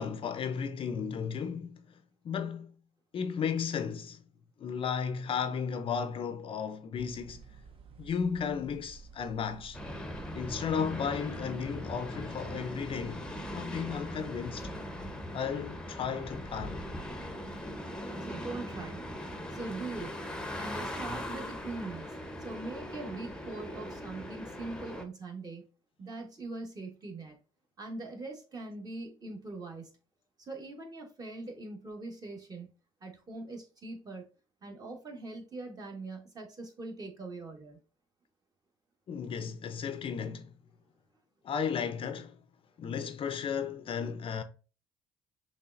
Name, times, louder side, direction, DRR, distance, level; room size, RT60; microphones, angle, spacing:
voice 1, 0.0-1.9 2.2-2.7 3.1-4.2 4.6-7.4 8.0-9.8 10.3-13.3 13.5-14.7 15.3-16.8 39.1-40.5 41.4-42.4 42.8-44.4, left 7 dB, 45° left, 0.5 m, -34 dB
sound 1, 6.9-14.9, right 5 dB, 45° right, 0.8 m, -53 dB
sound 2, 9.7-25.0, equal, 5° left, 0.8 m, -40 dB
voice 2, 18.2-19.0 19.5-20.1 20.5-22.1 22.4-25.6 26.0-27.3 27.8-29.9 30.4-32.7 33.0-34.3 34.6-37.8, right 3 dB, 30° right, 1.4 m, -42 dB
5.6 x 3.2 x 2.5 m
cardioid pair, 95°, 13 cm